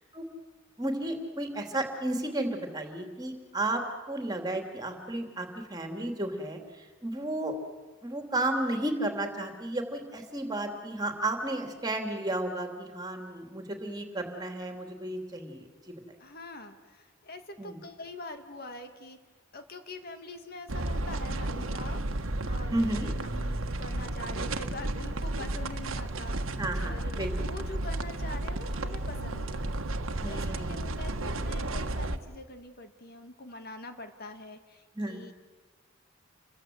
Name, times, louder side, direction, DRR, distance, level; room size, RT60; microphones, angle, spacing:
voice 1, 0.8-3.8 4.1-7.5 8.0-15.9 17.6-17.8 22.7-23.1 26.6-27.5 30.2-30.9 34.9-35.2, right 1 dB, 20° right, 4 dB, 3.0 m, -33 dB
voice 2, 16.2-19.2 19.5-22.0 22.5-29.8 30.2-35.3, left 2 dB, 50° left, 7 dB, 1.9 m, -44 dB
sound 1, 20.7-32.2, right 1 dB, 85° right, 1.4 m, -33 dB
29.0 x 23.5 x 7.9 m, 1.3 s
head